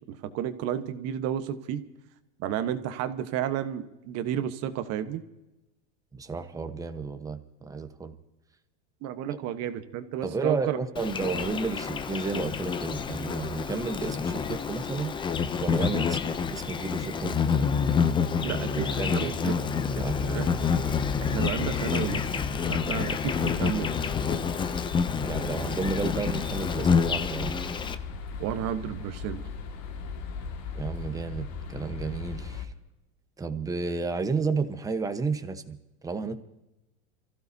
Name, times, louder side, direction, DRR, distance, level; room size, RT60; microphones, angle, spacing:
voice 1, 0.1-1.8 2.4-5.2 9.0-10.8 18.4-18.9 19.1-19.6 20.3-20.5 21.2-23.9 28.4-29.4, right 10 dB, 40° right, 10 dB, 1.2 m, -32 dB
voice 2, 6.1-8.1 10.2-15.1 15.6-17.7 18.5-20.6 25.2-27.5 30.7-32.7 33.4-36.4, right 4 dB, 10° right, 7 dB, 1.0 m, -32 dB
Insect, 11.0-28.0, left 6 dB, 15° left, 0.5 m, -28 dB
sound 1, 19.9-32.6, left 5 dB, 50° left, 2.0 m, -37 dB
28.5 x 15.0 x 2.8 m, 0.94 s
supercardioid pair, 135°, 37 cm